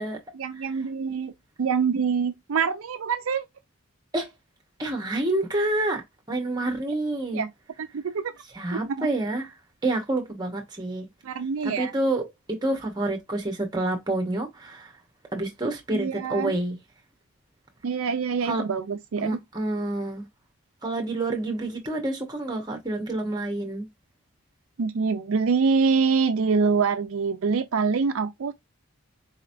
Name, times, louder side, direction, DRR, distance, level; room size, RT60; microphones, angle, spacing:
voice 1, 0.3-1.3 1.6-3.5 7.3-7.5 7.8-8.3 8.7-9.1 11.2-11.9 15.9-16.6 17.8-19.4 24.8-28.5, right 5 dB, 75° right, 0.4 m, -25 dB
voice 2, 4.8-6.0 6.3-7.4 8.6-9.5 9.8-11.1 11.6-14.9 15.3-16.8 18.4-18.6 19.2-20.2 20.8-23.9, right 2 dB, 20° right, 1.0 m, -28 dB
4.2 x 3.0 x 2.6 m
head